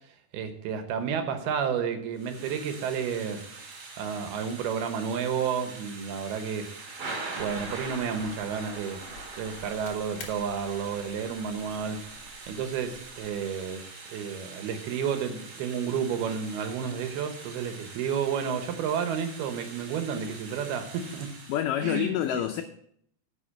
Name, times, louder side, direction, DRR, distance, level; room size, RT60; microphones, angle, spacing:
voice 1, 0.3-3.4 4.0-7.0 7.4-9.0 9.4-12.0 12.5-21.3 21.8-22.4, right 7 dB, 85° right, 3.1 m, -31 dB
Thunder / Rain, 2.1-21.6, right 3 dB, 45° right, 2.4 m, -43 dB
sound 1, 7.4-13.3, left 4 dB, 50° left, 1.8 m, -50 dB
voice 2, 21.5-22.6, left 11 dB, 85° left, 1.9 m, -27 dB
9.9 x 6.1 x 7.4 m
omnidirectional pair, 4.4 m